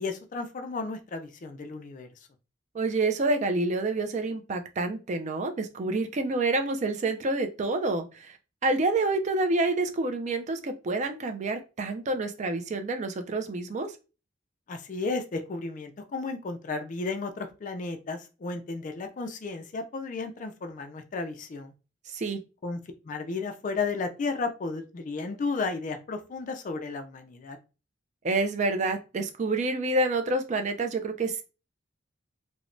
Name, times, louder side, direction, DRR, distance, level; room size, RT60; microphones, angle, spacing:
voice 1, 0.0-2.1 14.7-21.7 22.6-22.8 23.0-27.6, left 4 dB, 40° left, 6 dB, 0.4 m, -33 dB
voice 2, 2.7-8.4 8.6-13.9 22.1-22.4 28.2-31.4, right 2 dB, 35° right, 7 dB, 0.3 m, -28 dB
3.0 x 2.1 x 2.5 m, 0.31 s
head